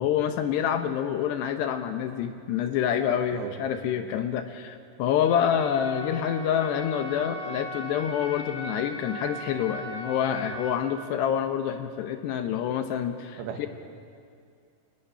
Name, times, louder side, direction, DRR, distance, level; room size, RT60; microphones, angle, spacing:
voice 1, 0.0-13.7, left 9 dB, 75° left, 7 dB, 2.8 m, -27 dB
voice 2, 3.3-3.5 13.4-13.7, right 9 dB, 90° right, 5 dB, 4.3 m, -35 dB
sound 1, 5.2-10.7, equal, 20° right, 6.4 m, -38 dB
25.0 x 17.5 x 9.9 m, 2.3 s
omnidirectional pair, 5.6 m